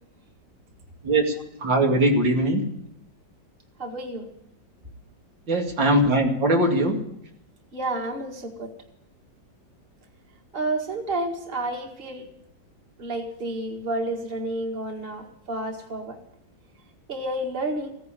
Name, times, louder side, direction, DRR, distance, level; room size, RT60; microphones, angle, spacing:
voice 1, 1.0-2.6 5.5-7.0, right 1 dB, 85° right, 1 dB, 3.1 m, -21 dB
voice 2, 3.8-4.3 7.7-8.7 10.5-12.3 13.0-16.2 17.1-17.9, right 2 dB, 30° right, 3 dB, 2.1 m, -30 dB
16.0 x 10.0 x 9.0 m, 0.75 s
omnidirectional pair, 2.0 m